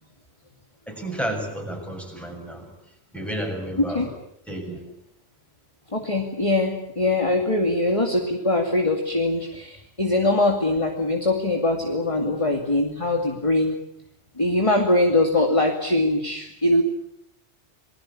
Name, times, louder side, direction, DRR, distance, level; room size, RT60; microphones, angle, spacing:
voice 1, 0.9-2.7 3.1-4.1 4.5-4.8, right 1 dB, ahead, 2 dB, 7.2 m, -31 dB
voice 2, 3.8-4.1 5.9-13.8 14.4-16.8, left 2 dB, 25° left, 3 dB, 2.5 m, -22 dB
29.0 x 20.5 x 8.5 m, 0.79 s
omnidirectional pair, 1.2 m